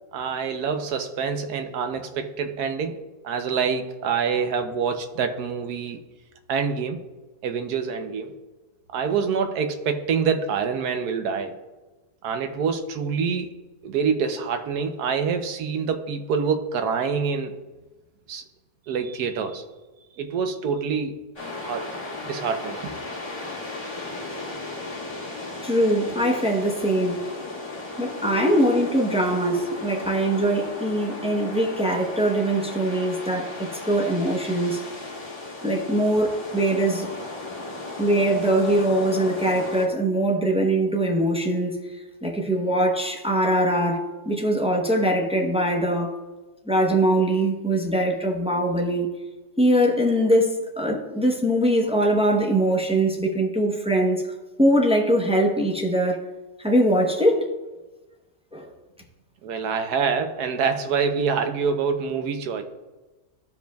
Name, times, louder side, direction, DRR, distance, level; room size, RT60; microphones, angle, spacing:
voice 1, 0.1-3.0 3.2-6.0 6.5-7.0 7.4-8.3 8.9-11.5 12.2-13.5 13.8-17.5 18.3-18.4 18.9-19.6 20.2-21.2 21.6-21.9 22.2-22.8 59.4-62.6, right 6 dB, 80° right, 1.2 m, -26 dB
sound 1, 21.4-39.9, left 2 dB, 20° left, 1.4 m, -35 dB
voice 2, 25.6-27.2 28.0-34.8 35.6-37.1 38.0-41.8 42.2-46.2 46.7-49.1 49.6-54.2 54.6-56.2 56.6-57.5 58.5-58.7, right 1 dB, 5° right, 0.4 m, -22 dB
14.5 x 5.1 x 2.3 m
omnidirectional pair, 1.7 m